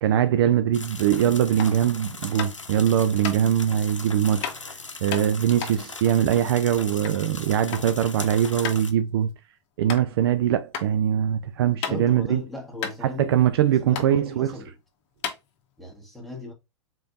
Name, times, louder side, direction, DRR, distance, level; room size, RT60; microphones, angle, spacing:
voice 1, 0.0-4.5 5.0-9.3 9.8-12.4 13.0-14.5, right 10 dB, 55° right, 0.4 m, -22 dB
sound 1, 0.7-8.9, left 3 dB, 85° left, 0.7 m, -39 dB
sound 2, 1.6-1.8 2.4-2.7 3.2-3.4 4.4-4.6 5.1-7.2 7.5-7.9 8.2-8.3 8.6-8.8 9.3-9.4 9.9-10.0 10.7-10.9 11.3-12.3 12.5-12.6 12.8-13.6 13.9-14.1 14.7-14.8 15.2-15.9, left 8 dB, 40° left, 1.0 m, -33 dB
voice 2, 11.6-13.3 13.8-14.8 15.8-16.5, left 3 dB, ahead, 1.5 m, -37 dB
4.9 x 3.8 x 2.6 m
figure-of-eight pair, 95°, 16 cm